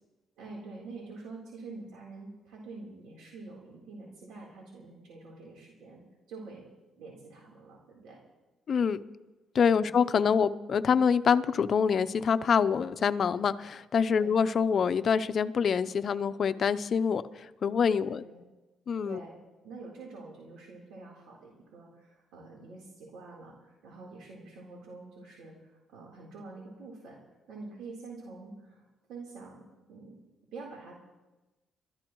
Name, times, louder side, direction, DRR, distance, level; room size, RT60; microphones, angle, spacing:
voice 1, 0.4-6.0 6.3-6.7 7.0-8.2 9.7-9.9 14.1-14.4 17.9-18.4 19.0-19.3 19.6-27.2 27.5-30.2 30.5-31.0, right 3 dB, 85° right, -3 dB, 3.8 m, -46 dB
voice 2, 8.7-9.0 9.5-17.2 17.6-18.2 18.9-19.2, left 6 dB, 55° left, 12 dB, 0.7 m, -25 dB
28.5 x 13.5 x 3.1 m, 1.1 s
cardioid pair, 90°, 0 cm